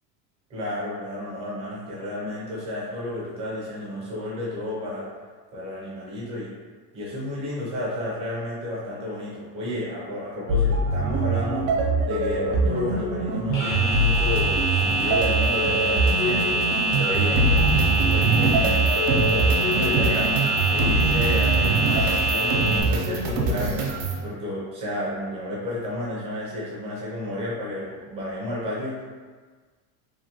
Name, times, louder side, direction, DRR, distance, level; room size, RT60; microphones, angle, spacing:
voice 1, 0.5-5.1 5.5-6.5 6.9-11.7 12.0-16.5 16.9-20.3 20.7-23.9 24.2-29.0, left 1 dB, 15° right, -6 dB, 0.3 m, -32 dB
sound 1, 10.5-24.2, right 2 dB, 90° right, 0.7 m, -23 dB
sound 2, 13.5-22.8, right 2 dB, 35° left, 0.8 m, -25 dB
2.6 x 2.6 x 2.7 m, 1.4 s
cardioid pair, 165°, 44 cm